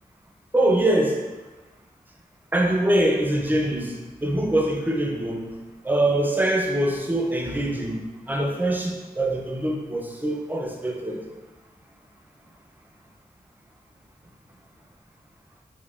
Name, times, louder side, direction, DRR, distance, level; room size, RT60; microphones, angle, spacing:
voice 1, 0.5-1.2 2.5-3.9 4.2-5.5 5.8-8.0 8.3-11.2, right 1 dB, 10° right, 1 dB, 0.4 m, -23 dB
5.0 x 2.1 x 2.3 m, 1.2 s
wide cardioid pair, 85°, 16 cm